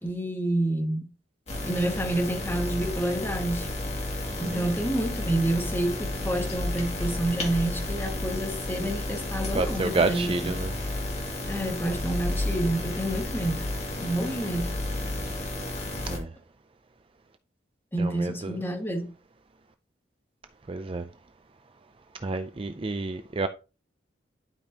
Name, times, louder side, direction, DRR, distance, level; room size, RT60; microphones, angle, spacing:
voice 1, 0.0-1.1 1.6-3.7 4.4-10.5 11.5-13.7 14.0-14.8 17.9-19.1, right 1 dB, 10° left, 1.6 m, -29 dB
sound 1, 1.5-16.2, left 1 dB, 35° left, 2.2 m, -32 dB
voice 2, 9.5-10.7 16.1-16.3 18.0-18.6 20.7-21.1 22.2-23.5, right 3 dB, 30° right, 0.4 m, -29 dB
11.5 x 5.2 x 2.8 m
head